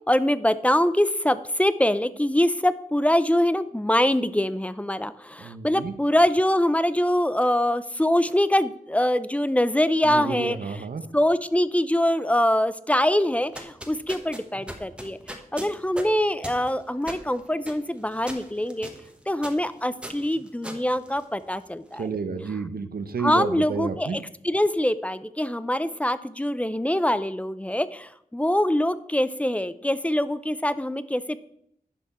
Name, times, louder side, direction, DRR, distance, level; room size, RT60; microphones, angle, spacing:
voice 1, 0.1-10.8 11.1-18.9 19.3-22.0 23.2-31.4, left 1 dB, 10° left, 14 dB, 0.5 m, -24 dB
voice 2, 5.4-5.9 10.0-11.1 22.0-24.2, right 5 dB, 85° right, 10 dB, 0.8 m, -30 dB
sound 1, 13.4-21.7, equal, 5° right, 1.3 m, -41 dB
11.0 x 5.8 x 4.2 m, 0.72 s
wide cardioid pair, 70°, 15 cm